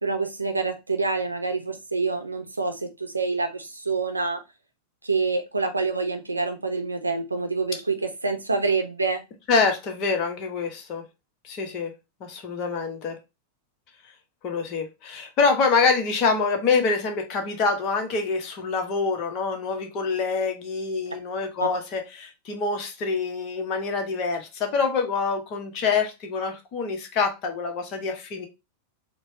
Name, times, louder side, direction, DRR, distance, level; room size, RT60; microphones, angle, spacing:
voice 1, 0.0-4.4 5.0-9.2 21.6-21.7, right 3 dB, 80° right, 0.7 m, -27 dB
voice 2, 9.5-11.0 11.4-11.9 12.2-13.2 14.4-28.5, left 4 dB, 40° left, 1.1 m, -26 dB
4.5 x 2.3 x 4.2 m
figure-of-eight pair, 90°, 0 cm